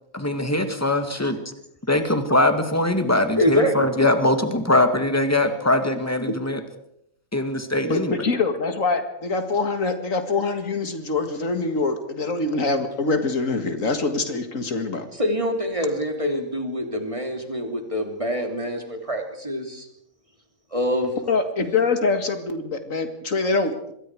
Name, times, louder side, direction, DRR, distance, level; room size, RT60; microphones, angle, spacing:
voice 1, 0.1-1.4 1.9-6.6 7.3-8.2, left 1 dB, 10° left, 7 dB, 2.1 m, -21 dB
voice 2, 3.4-3.9 15.2-19.9 20.7-21.4, equal, 25° right, 4 dB, 3.2 m, -25 dB
voice 3, 7.9-15.1 21.3-23.9, left 3 dB, 75° left, 7 dB, 2.3 m, -24 dB
26.5 x 21.5 x 4.8 m, 0.75 s
omnidirectional pair, 1.4 m